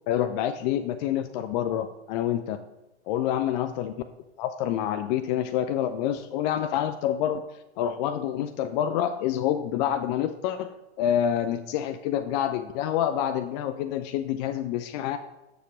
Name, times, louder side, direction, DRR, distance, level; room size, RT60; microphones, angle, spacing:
voice 1, 0.1-2.6 3.1-3.9 4.4-7.4 7.8-15.2, left 10 dB, 40° left, 9 dB, 0.5 m, -27 dB
8.2 x 6.8 x 3.8 m, 0.99 s
hypercardioid pair, 110°, 34 cm